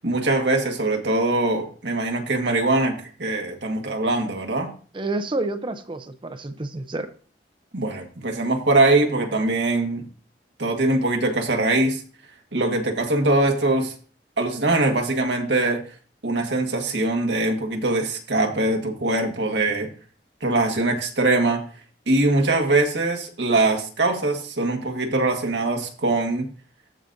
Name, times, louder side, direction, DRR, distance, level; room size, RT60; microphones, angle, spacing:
voice 1, 0.0-4.7 7.7-10.1 10.6-12.0 12.5-13.9 14.4-15.8 16.2-19.9 20.4-21.6 22.1-26.5, right 2 dB, 85° right, 2 dB, 1.6 m, -22 dB
voice 2, 4.9-7.1, right 2 dB, 30° right, 9 dB, 0.6 m, -29 dB
14.5 x 5.0 x 2.7 m, 0.41 s
head